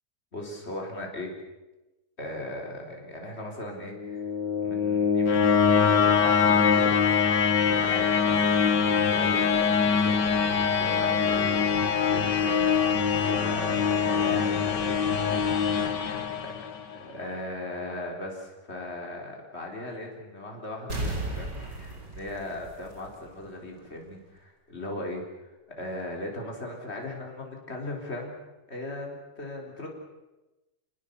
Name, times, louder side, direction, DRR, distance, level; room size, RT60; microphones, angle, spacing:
voice 1, 0.3-1.3 2.2-4.3 4.6-5.4 5.7-7.0 7.7-8.4 8.8-15.4 16.9-28.3 28.7-29.9, left 1 dB, 35° left, 0 dB, 4.4 m, -38 dB
sound 1, 3.9-17.0, left 6 dB, 70° left, 2.1 m, -23 dB
sound 2, 20.9-23.5 23.8-23.9, right 1 dB, 70° right, 4.7 m, -35 dB
28.5 x 19.5 x 6.9 m, 1.1 s
omnidirectional pair, 1.9 m